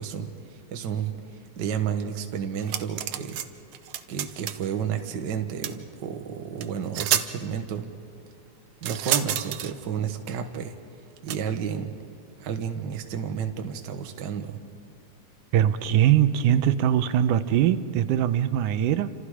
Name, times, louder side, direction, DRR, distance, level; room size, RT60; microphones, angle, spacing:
voice 1, 0.0-3.4 4.1-7.9 8.8-10.7 11.2-11.9 12.4-14.6, right 7 dB, 50° right, 5 dB, 1.5 m, -31 dB
sound 1, 2.6-3.5 3.7-4.6 5.6-5.7 6.6-6.7 6.9-7.3 8.8-9.7 11.3-11.4, right 11 dB, 70° right, 1.5 m, -28 dB
voice 2, 15.5-19.1, right 11 dB, 85° right, 11 dB, 2.3 m, -21 dB
29.0 x 27.0 x 4.9 m, 2.5 s
omnidirectional pair, 3.6 m